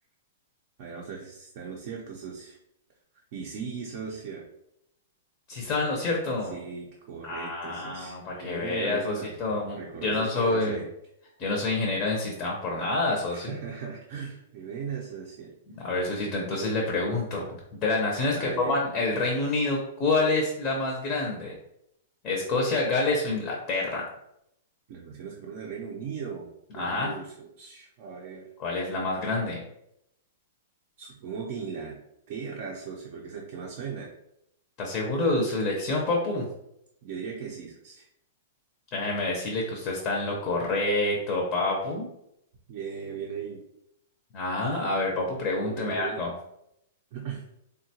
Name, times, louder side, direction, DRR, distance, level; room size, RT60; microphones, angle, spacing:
voice 1, 0.8-2.6 3.3-4.4 6.5-9.4 9.8-10.9 13.3-15.5 18.3-18.8 24.9-26.5 26.7-28.5 31.0-32.0 32.3-34.1 37.0-38.1 42.7-43.6 45.6-46.3 47.1-47.5, right 6 dB, 45° right, -2 dB, 0.5 m, -38 dB
voice 2, 5.5-6.5 7.2-10.8 11.4-13.6 15.7-17.4 17.7-21.6 22.2-24.0 26.8-27.1 28.6-29.6 34.8-36.5 38.9-42.1 44.3-46.3, left 2 dB, 25° left, -1 dB, 0.6 m, -27 dB
3.6 x 2.2 x 2.8 m, 0.79 s
hypercardioid pair, 160°, 0 cm